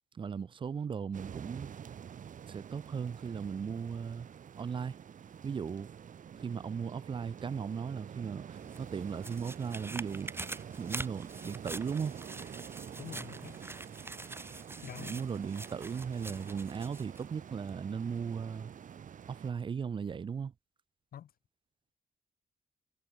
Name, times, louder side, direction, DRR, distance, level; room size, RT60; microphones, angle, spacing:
voice 1, 0.1-1.7 2.5-4.3 4.6-5.0 5.4-5.9 6.4-10.3 10.8-12.2 15.0-18.7 19.3-20.5, right 6 dB, 35° right, 0.4 m, -37 dB
sound 1, 1.1-19.5, right 8 dB, 55° right, 0.9 m, -47 dB
sound 2, 8.5-17.3 17.7-17.8, right 2 dB, 15° right, 1.2 m, -45 dB
voice 2, 13.0-13.6 14.8-15.2 21.1-21.3, left 10 dB, 70° left, 0.8 m, -46 dB
wide cardioid pair, 125°, 16 cm